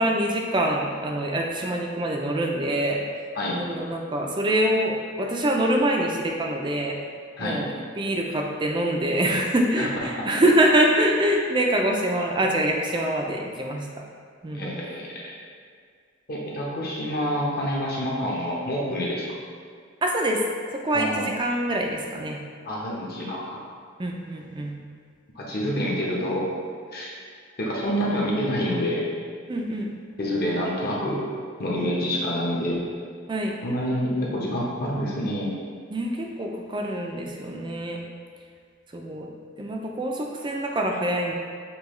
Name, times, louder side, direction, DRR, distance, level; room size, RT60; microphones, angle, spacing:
voice 1, 0.0-3.0 3.5-7.0 7.4-7.7 8.0-13.9 14.4-14.7 20.0-20.4 20.7-22.4 24.0-24.7 29.5-29.9 33.3-33.6 35.9-38.0 38.9-39.3 39.6-41.3, right 1 dB, 25° right, 1 dB, 0.4 m, -25 dB
voice 2, 14.5-15.3 16.3-19.3 20.9-21.2 22.6-23.6 25.3-26.5 26.9-27.1 27.6-29.1 30.2-31.3 31.6-32.8 33.6-35.5, equal, 50° left, -4 dB, 0.9 m, -27 dB
6.9 x 2.3 x 3.1 m, 2.1 s
head